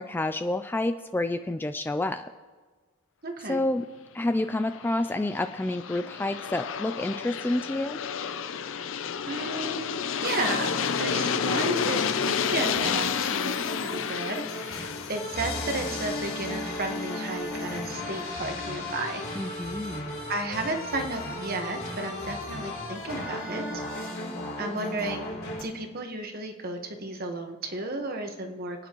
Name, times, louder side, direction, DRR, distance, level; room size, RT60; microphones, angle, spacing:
voice 1, 0.0-2.3 3.5-3.9 4.1-8.0 19.4-20.2, left 2 dB, 10° left, 9 dB, 0.3 m, -29 dB
voice 2, 3.2-3.7 9.3-9.9 10.2-19.2 20.3-23.8 24.6-25.3 25.6-28.9, right 2 dB, 45° right, 4 dB, 1.3 m, -33 dB
Aircraft, 4.5-17.3, left 7 dB, 65° left, 0.5 m, -31 dB
sound 1, 10.3-25.6, left 1 dB, 85° left, 3.8 m, -36 dB
28.0 x 9.4 x 3.0 m, 1.4 s
head